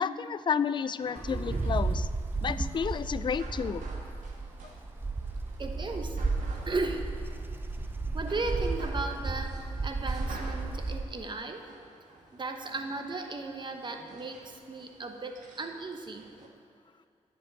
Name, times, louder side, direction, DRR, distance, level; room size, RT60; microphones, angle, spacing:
voice 1, 0.0-2.1 2.4-3.9, left 6 dB, 35° left, 15 dB, 0.4 m, -31 dB
sound 1, 1.0-16.5, right 2 dB, 75° right, 1.6 m, -50 dB
Wind, 1.2-11.2, right 3 dB, 15° right, 0.6 m, -33 dB
voice 2, 5.6-6.2 6.6-7.1 8.1-11.7 12.3-16.3, right 3 dB, 35° right, 5 dB, 1.1 m, -36 dB
11.5 x 5.3 x 8.1 m, 2.5 s
cardioid pair, 75°, 13 cm